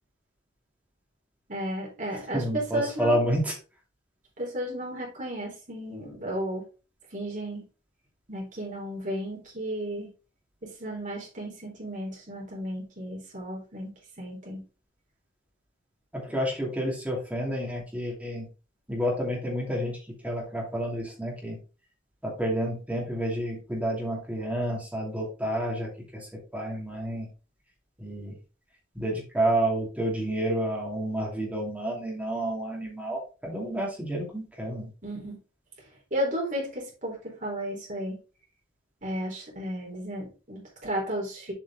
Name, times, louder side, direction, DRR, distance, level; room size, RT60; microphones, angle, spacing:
voice 1, 1.5-3.2 4.4-6.6 7.1-7.6 8.3-10.1 10.8-13.9 14.2-14.6 35.0-35.4 36.1-38.2 39.0-41.5, equal, 40° right, -2 dB, 3.9 m, -33 dB
voice 2, 2.3-3.5 16.1-18.4 18.9-20.0 20.2-21.6 22.2-27.3 28.0-28.3 28.9-34.9, right 1 dB, 10° right, -3 dB, 2.7 m, -30 dB
7.6 x 5.2 x 3.6 m, 0.33 s
head